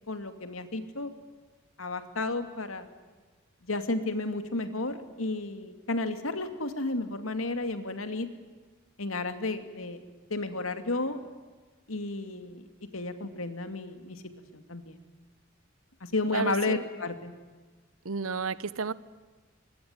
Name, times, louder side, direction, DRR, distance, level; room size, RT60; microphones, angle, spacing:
voice 1, 0.1-1.1 1.8-2.9 3.7-8.3 9.0-10.0 10.3-11.2 11.9-12.6 12.9-14.2 14.5-15.0 16.0-17.3, left 2 dB, 80° left, 9 dB, 2.6 m, -32 dB
voice 2, 16.3-16.8 18.0-18.9, right 4 dB, 85° right, 18 dB, 1.0 m, -31 dB
25.0 x 21.5 x 9.7 m, 1.4 s
head